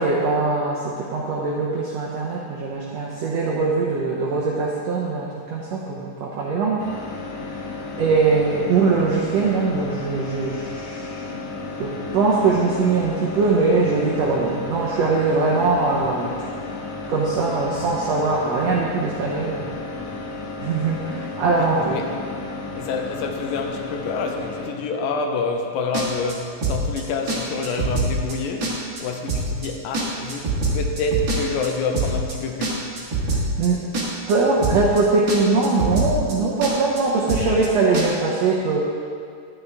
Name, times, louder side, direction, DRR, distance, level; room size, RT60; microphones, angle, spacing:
voice 1, 0.0-6.8 7.6-11.3 11.8-16.3 17.1-19.7 20.6-22.0 33.3-33.8 34.3-38.8, right 3 dB, 80° right, -4 dB, 1.5 m, -22 dB
sound 1, 6.8-24.7, left 3 dB, 70° left, 2.5 m, -33 dB
voice 2, 21.5-22.3 22.8-32.9, left 4 dB, 85° left, 3 dB, 2.5 m, -28 dB
sound 2, 25.9-26.3 26.6-27.0 27.3-27.4 27.6-28.3 28.6-29.0 29.3-29.7 29.9-31.7 31.9-32.3 32.6-33.7 33.9-34.3 34.6-35.0 35.3-35.4 35.6-36.3 36.6-37.0 37.3-37.7 37.9-38.1, right 3 dB, 50° right, 1.6 m, -24 dB
11.0 x 9.3 x 3.5 m, 2.3 s
omnidirectional pair, 4.1 m